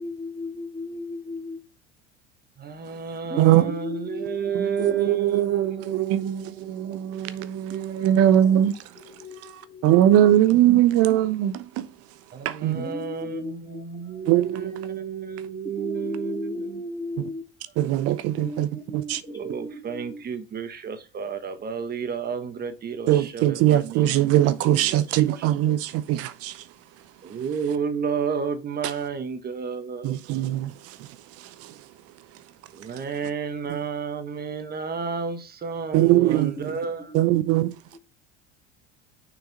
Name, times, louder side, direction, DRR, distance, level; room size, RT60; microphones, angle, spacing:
voice 1, 0.0-1.6 3.3-4.8 5.6-5.7 6.1-7.0 9.0-10.0 12.7-14.4 15.8-17.4 18.4-20.2 36.5-37.4 37.9-38.0, left 2 dB, 10° left, 2.2 m, -37 dB
voice 2, 2.6-6.5 7.1-8.2 12.3-16.8 19.3-24.2 24.8-24.9 27.2-30.1 32.7-37.0, right 6 dB, 30° right, 1.4 m, -32 dB
voice 3, 3.4-3.8 4.5-8.9 9.8-11.9 12.4-12.9 14.3-15.0 17.8-18.7 18.9-19.2 23.1-26.7 30.0-31.1 31.4-31.8 33.7-33.8 35.9-36.7 37.1-37.7, right 12 dB, 45° right, 0.7 m, -21 dB
6.5 x 4.5 x 4.1 m
figure-of-eight pair, 70°, 33 cm